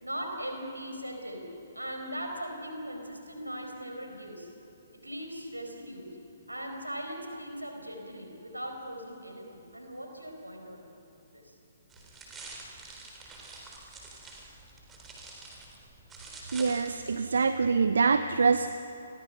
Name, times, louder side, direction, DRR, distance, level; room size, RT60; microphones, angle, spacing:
voice 1, 0.0-1.5 1.7-4.5 4.9-6.1 6.5-10.9 11.3-11.5, equal, 85° right, 3 dB, 4.7 m, -39 dB
sound 1, 11.9-17.2, right 3 dB, 15° right, 3.6 m, -47 dB
voice 2, 16.5-18.7, right 5 dB, 60° right, 11 dB, 0.8 m, -25 dB
30.0 x 22.0 x 5.8 m, 3.0 s
figure-of-eight pair, 125°, 0 cm